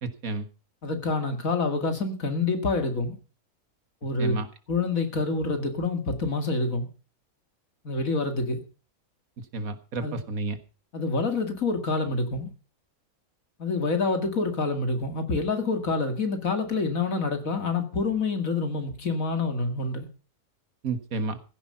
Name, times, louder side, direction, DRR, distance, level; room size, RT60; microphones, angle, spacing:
voice 1, 0.0-0.5 4.2-4.5 9.5-10.6 20.8-21.4, right 3 dB, 70° right, 1.9 m, -31 dB
voice 2, 0.8-3.2 4.0-4.4 4.7-6.9 7.8-8.6 10.0-10.2 10.9-12.5 13.6-20.1, left 3 dB, 65° left, 2.6 m, -27 dB
15.5 x 10.0 x 5.6 m
omnidirectional pair, 1.5 m